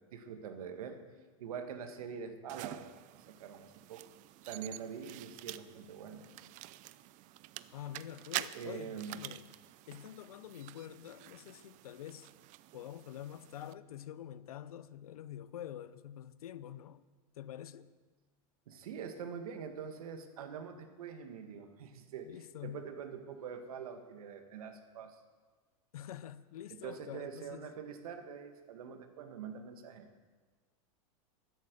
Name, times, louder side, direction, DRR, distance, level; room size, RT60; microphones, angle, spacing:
voice 1, 0.1-1.0 1.4-2.9 3.1-4.1 4.5-6.3 8.5-9.2 18.7-25.2 26.7-30.1, right 7 dB, 85° right, 1.9 m, -44 dB
sound 1, 2.5-13.7, right 16 dB, 45° right, 0.5 m, -47 dB
voice 2, 7.7-9.5 9.9-12.3 12.7-17.0 17.4-17.9 22.2-22.8 25.9-27.7, left 10 dB, 90° left, 0.7 m, -47 dB
13.0 x 10.5 x 6.9 m
supercardioid pair, 120°, 18 cm